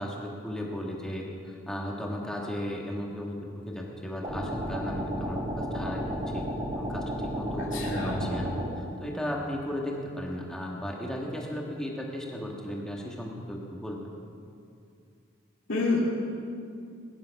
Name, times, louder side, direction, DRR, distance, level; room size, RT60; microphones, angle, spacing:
voice 1, 0.0-3.4 3.7-6.4 6.7-14.1, left 1 dB, 5° left, -2 dB, 1.7 m, -35 dB
sound 1, 4.2-8.7, equal, 30° right, 3.2 m, -33 dB
voice 2, 7.7-8.3 15.7-16.0, left 3 dB, 60° left, -7 dB, 2.9 m, -28 dB
20.5 x 11.0 x 5.9 m, 2.5 s
head